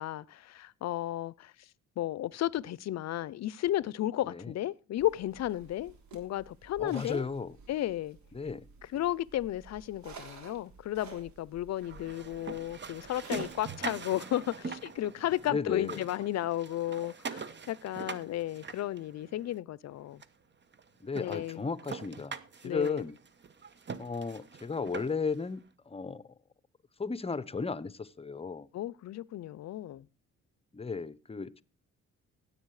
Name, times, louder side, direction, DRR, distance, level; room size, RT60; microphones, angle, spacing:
voice 1, 0.0-1.5 2.0-7.3 7.7-8.2 8.9-20.2 21.2-21.7 22.6-23.0 28.7-30.1, left 13 dB, 60° left, 0.6 m, -34 dB
sound 1, 5.0-13.7, right 4 dB, 65° right, 3.6 m, -53 dB
voice 2, 6.8-7.6 8.3-8.7 15.5-16.1 21.0-22.4 22.6-23.1 24.0-25.6 25.9-26.2 27.0-28.7 30.7-31.6, left 4 dB, 20° left, 0.8 m, -35 dB
sound 2, 11.8-15.5 15.8-19.5 20.2-20.3 20.7-20.8 21.1-25.4, right 4 dB, 35° right, 1.1 m, -43 dB
16.0 x 8.4 x 4.8 m
cardioid pair, 90°, 30 cm